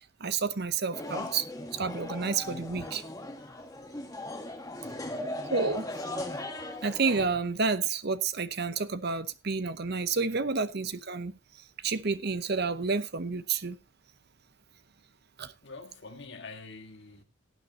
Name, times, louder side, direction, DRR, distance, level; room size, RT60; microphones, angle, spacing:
voice 1, 0.2-1.5 1.7-3.0 5.5-5.8 6.8-11.4 11.8-13.8 15.4-15.5, right 4 dB, 50° right, 0.8 m, -30 dB
sound 1, 0.9-7.3, left 1 dB, 15° left, 1.6 m, -38 dB
voice 2, 4.8-5.5 5.9-6.0 6.6-6.7 10.3-10.4 15.6-17.2, left 3 dB, 55° left, 1.7 m, -47 dB
18.0 x 9.2 x 2.8 m
head